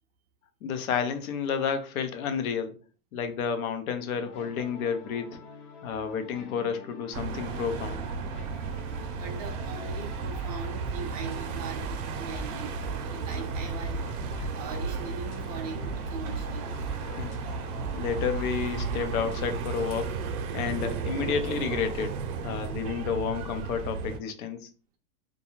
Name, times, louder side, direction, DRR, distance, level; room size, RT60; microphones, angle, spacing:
voice 1, 0.6-2.8 3.1-5.4 5.8-8.0 17.2-17.3 17.9-20.2 20.5-22.2 22.4-24.7, left 6 dB, 70° left, 0.7 m, -30 dB
sound 1, 4.1-19.4, right 2 dB, 90° left, 1.2 m, -43 dB
sound 2, 7.1-24.2, right 5 dB, 75° right, 0.6 m, -34 dB
voice 2, 8.4-12.8 13.0-14.2 14.5-16.8, right 5 dB, 30° right, 0.4 m, -41 dB
2.6 x 2.3 x 3.0 m
supercardioid pair, 160°, 44 cm